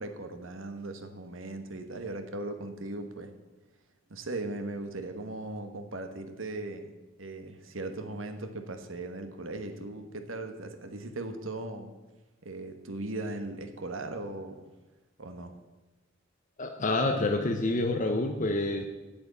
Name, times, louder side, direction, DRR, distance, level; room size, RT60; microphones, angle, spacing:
voice 1, 0.0-3.3 4.1-6.9 7.2-11.9 12.4-14.7 15.2-15.5, right 2 dB, 85° right, 6 dB, 1.3 m, -38 dB
voice 2, 16.6-18.9, left 2 dB, 40° left, 5 dB, 0.9 m, -28 dB
8.8 x 8.0 x 8.3 m, 1.2 s
head